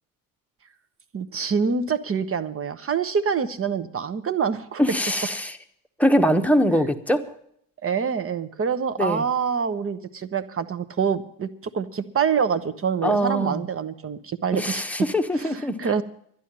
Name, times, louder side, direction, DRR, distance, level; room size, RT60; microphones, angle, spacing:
voice 1, 1.1-4.8 7.8-11.5 11.7-14.8 15.3-16.0, right 6 dB, 30° right, 11 dB, 1.1 m, -26 dB
voice 2, 4.8-5.5 6.0-7.2 9.0-9.2 13.0-13.6 14.5-15.9, equal, 5° left, 5 dB, 1.2 m, -22 dB
12.0 x 10.5 x 7.5 m, 0.68 s
hypercardioid pair, 65°, 47 cm